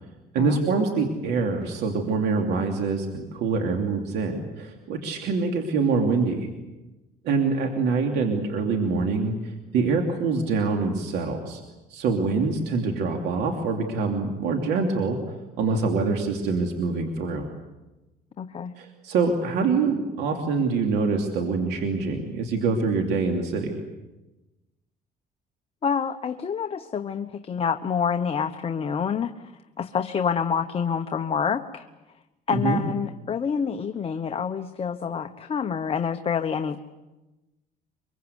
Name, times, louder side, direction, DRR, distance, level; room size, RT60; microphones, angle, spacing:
voice 1, 0.3-6.5 7.2-11.6 11.9-15.2 15.6-17.5 18.8-23.8 32.5-32.8, right 4 dB, 80° right, 3 dB, 2.9 m, -25 dB
voice 2, 18.4-18.8 25.8-29.3 29.8-31.9 32.5-36.8, left 6 dB, 35° left, 7 dB, 1.1 m, -27 dB
24.5 x 23.5 x 8.2 m, 1.1 s
cardioid pair, 110°, 17 cm